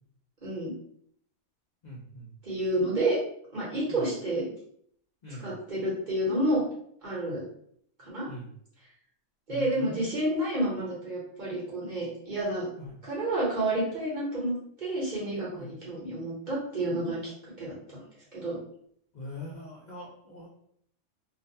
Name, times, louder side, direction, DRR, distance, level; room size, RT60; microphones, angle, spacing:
voice 1, 0.4-0.7 2.4-3.2 3.5-4.4 5.4-6.6 7.0-7.4 8.0-8.3 9.5-12.7 13.0-17.3 17.6-18.0 18.3-18.6, right 1 dB, 40° right, -7 dB, 0.9 m, -30 dB
voice 2, 1.8-2.3 3.9-4.0 5.2-5.5 8.3-8.5 9.5-10.2 12.8-13.0 15.5-15.7 19.1-20.5, left 1 dB, 65° left, -5 dB, 0.4 m, -42 dB
2.5 x 2.1 x 2.7 m, 0.66 s
omnidirectional pair, 1.5 m